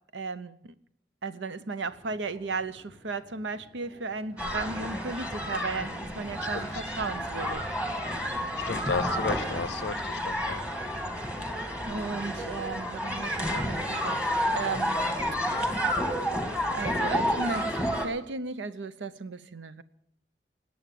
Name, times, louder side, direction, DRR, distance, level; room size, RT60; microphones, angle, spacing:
voice 1, 0.1-0.7 1.2-7.6 11.9-14.2 14.5-15.0 16.7-19.8, right 3 dB, 90° right, 13 dB, 0.8 m, -35 dB
sound 1, 1.8-9.9, left 1 dB, 55° right, 6.9 m, -54 dB
sound 2, 4.4-18.1, equal, 5° right, 1.7 m, -30 dB
voice 2, 8.7-10.6, left 4 dB, 70° left, 19 dB, 0.6 m, -34 dB
18.5 x 8.7 x 7.6 m, 0.75 s
head